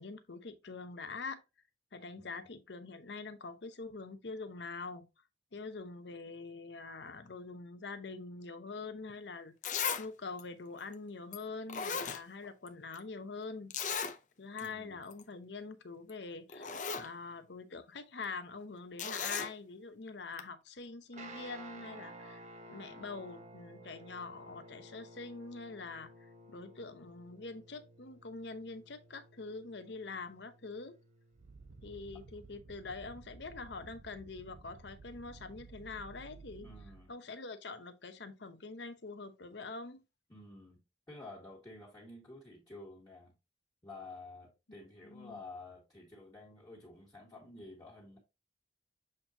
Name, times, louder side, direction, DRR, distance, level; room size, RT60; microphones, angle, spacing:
voice 1, 0.0-1.4 1.9-5.1 5.5-13.7 14.4-16.7 17.0-31.0 31.8-36.7 37.1-40.0 45.0-45.4, left 4 dB, 75° left, 0.8 m, -45 dB
voice 2, 2.2-2.5 14.6-15.0 36.6-37.1 40.3-40.8 41.1-43.3 43.8-48.2, left 2 dB, 20° left, 1.9 m, -51 dB
Zipper (clothing), 9.1-9.2 9.6-10.1 10.4-10.5 11.3-11.4 11.7-12.7 12.9-13.0 13.7-14.2 14.6-14.7 15.0-15.2 16.1-16.2 16.5-17.1 19.0-19.5 20.4-20.5, left 6 dB, 45° left, 0.7 m, -36 dB
Guitar, 21.1-32.6, right 1 dB, 40° right, 1.1 m, -54 dB
sound 1, 31.3-37.1, right 3 dB, 85° right, 0.9 m, -54 dB
7.4 x 4.4 x 2.8 m
head